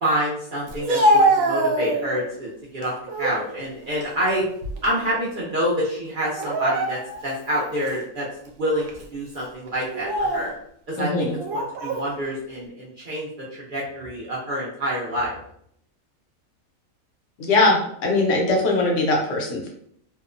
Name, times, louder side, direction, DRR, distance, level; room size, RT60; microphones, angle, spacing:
voice 1, 0.0-4.5 4.8-8.3 8.6-10.5 10.9-15.3, equal, 55° right, -6 dB, 0.5 m, -27 dB
Speech, 0.7-2.3 2.8-3.4 3.8-5.1 5.3-5.5 6.3-7.3 7.9-8.0 8.8-9.0 9.8-10.5 11.4-12.1, right 1 dB, 75° right, 1.0 m, -23 dB
voice 2, 11.0-11.3 17.4-19.7, left 2 dB, 65° left, 0 dB, 1.0 m, -21 dB
2.8 x 2.0 x 2.4 m, 0.68 s
omnidirectional pair, 1.4 m